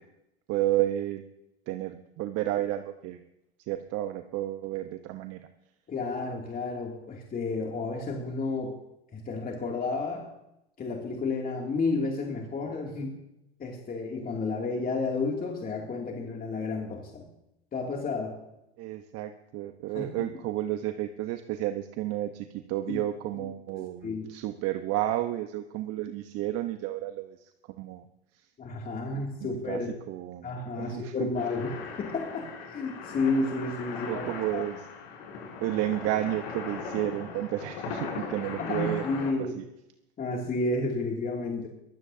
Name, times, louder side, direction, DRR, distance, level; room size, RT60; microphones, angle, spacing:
voice 1, 0.5-1.2 1.7-3.2 3.7-5.4 18.8-27.5 27.8-28.0 28.3-28.5 29.4-29.8 30.1-30.5 30.8-31.1 34.1-34.8 35.6-39.0 39.4-39.6, right 14 dB, 45° right, 8 dB, 1.1 m, -31 dB
voice 2, 5.9-8.8 9.1-10.3 10.8-13.2 13.6-17.2 17.7-18.4 19.9-20.3 22.9-23.0 23.7-24.3 28.6-29.9 30.4-34.3 34.5-34.6 38.6-39.6 40.2-41.7, left 3 dB, 25° left, 0 dB, 2.7 m, -31 dB
sound 1, 31.4-39.3, left 5 dB, 60° left, 7.2 m, -39 dB
23.0 x 15.5 x 2.8 m, 0.87 s
hypercardioid pair, 95°, 33 cm